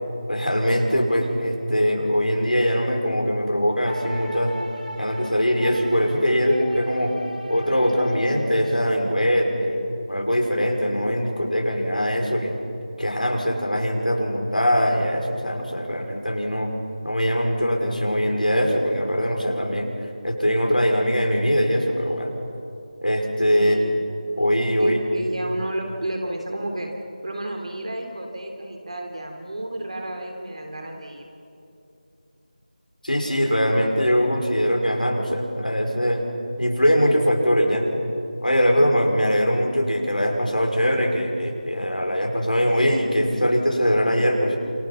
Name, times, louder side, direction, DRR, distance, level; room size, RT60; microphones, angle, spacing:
voice 1, 0.3-4.5 4.9-7.1 7.5-12.5 13.0-16.7 17.0-19.9 20.2-22.3 23.0-23.8 24.4-25.0 33.0-36.2 36.6-37.9 38.4-44.6, equal, 85° left, 0 dB, 5.9 m, -22 dB
sound 1, 3.8-8.6, left 1 dB, 90° right, 6.0 m, -37 dB
voice 2, 23.5-24.1 24.8-26.9 27.2-31.3, right 1 dB, 50° right, 3 dB, 3.4 m, -31 dB
28.0 x 28.0 x 5.7 m, 2.6 s
figure-of-eight pair, 165°, 4 cm